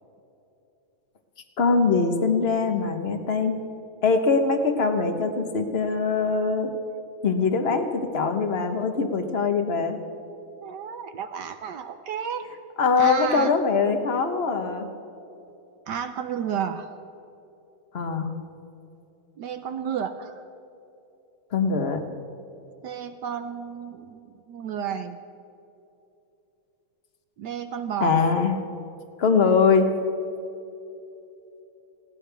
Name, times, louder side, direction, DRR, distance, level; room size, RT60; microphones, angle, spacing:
voice 1, 1.6-3.6 4.0-6.7 7.2-10.0 12.8-14.9 17.9-18.4 21.5-22.0 28.0-28.6 29.2-29.9, left 4 dB, 40° left, 6 dB, 0.9 m, -22 dB
voice 2, 10.6-12.5 13.0-13.6 15.9-16.9 19.4-20.4 22.8-25.2 27.4-28.2, right 8 dB, 70° right, 9 dB, 1.0 m, -32 dB
20.0 x 17.0 x 3.4 m, 2.9 s
omnidirectional pair, 2.4 m